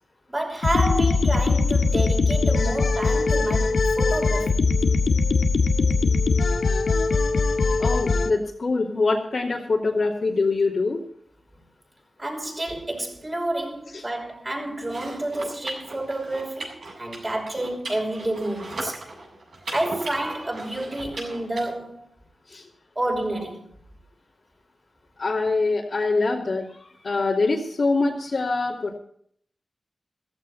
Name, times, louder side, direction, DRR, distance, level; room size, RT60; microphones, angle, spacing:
voice 1, 0.3-4.6 6.3-6.7 12.2-19.0 19.7-22.1 23.0-23.7, right 1 dB, 25° right, 5.8 m, -29 dB
sound 1, 0.6-8.3, left 4 dB, 80° left, 1.7 m, -21 dB
voice 2, 7.8-11.0 13.9-14.0 22.5-22.7 25.2-29.0, left 3 dB, 55° left, 2.9 m, -24 dB
sound 2, 14.8-21.6, right 2 dB, 65° right, 7.6 m, -38 dB
15.5 x 15.0 x 4.3 m
wide cardioid pair, 85°, 0 cm